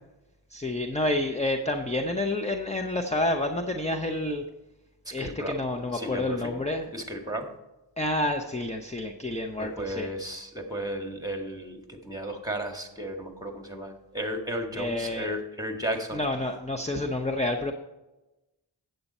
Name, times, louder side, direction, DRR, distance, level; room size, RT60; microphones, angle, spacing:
voice 1, 0.5-4.4 5.1-6.9 8.0-10.1 14.7-15.3 16.1-17.7, left 1 dB, 15° left, 3 dB, 0.7 m, -29 dB
voice 2, 5.1-6.5 6.9-7.5 9.6-16.2, equal, 10° right, 3 dB, 1.7 m, -34 dB
8.5 x 8.0 x 4.2 m, 1.0 s
wide cardioid pair, 50°, 43 cm